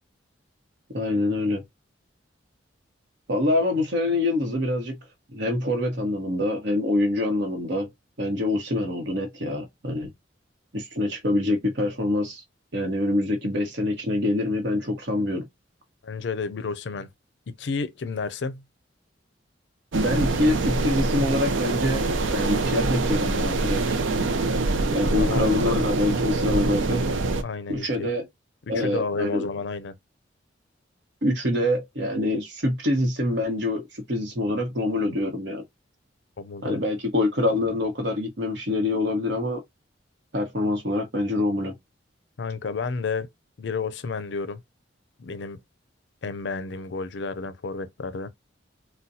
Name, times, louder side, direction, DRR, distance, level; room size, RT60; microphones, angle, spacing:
voice 1, 0.9-1.6 3.3-4.9 5.3-7.9 8.2-10.1 10.7-12.4 12.7-15.4 19.9-24.0 24.9-27.0 27.7-28.2 28.7-29.4 31.2-35.6 36.6-39.6 40.3-41.7, left 1 dB, 65° right, 1.1 m, -25 dB
voice 2, 16.0-17.1 17.6-18.6 25.1-25.5 27.4-28.1 28.7-29.9 36.4-36.8 42.4-43.3 43.6-44.6 45.2-45.6 46.2-48.3, left 4 dB, 60° left, 0.4 m, -31 dB
sound 1, 19.9-27.4, right 3 dB, 85° right, 0.5 m, -25 dB
3.9 x 2.2 x 2.6 m
head